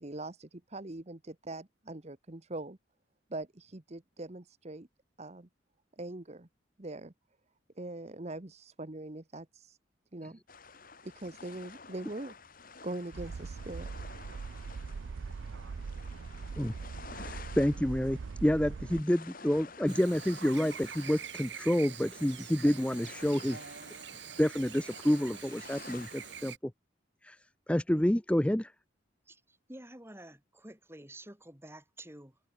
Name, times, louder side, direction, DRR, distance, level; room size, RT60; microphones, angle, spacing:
voice 1, 0.0-2.8 3.3-4.9 5.2-5.5 6.0-6.5 6.8-7.1 7.8-9.8 10.1-10.4 11.0-12.3 12.8-13.9, right 2 dB, 35° right, 1.1 m, -42 dB
sound 1, 10.5-26.5, left 4 dB, 45° left, 3.4 m, -52 dB
sound 2, 13.1-19.0, right 4 dB, 80° right, 0.5 m, -41 dB
voice 2, 17.1-23.6 24.4-26.5 27.2-27.4 27.7-28.7, equal, 5° left, 0.5 m, -29 dB
Chirp tweet / Buzz, 19.9-26.6, right 8 dB, 65° right, 2.7 m, -45 dB
voice 3, 29.3-32.4, right 1 dB, 15° right, 3.8 m, -50 dB
open air
head